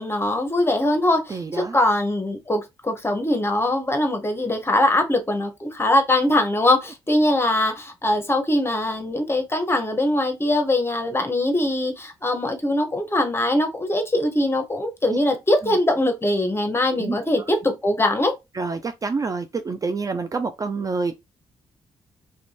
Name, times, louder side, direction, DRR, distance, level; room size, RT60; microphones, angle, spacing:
voice 1, 0.0-18.3, left 1 dB, 20° left, 0.8 m, -22 dB
voice 2, 1.3-1.8 15.1-15.2 15.6-15.8 16.9-17.4 18.5-21.2, right 4 dB, 30° right, 0.4 m, -28 dB
2.5 x 2.2 x 3.1 m
hypercardioid pair, 40°, 12 cm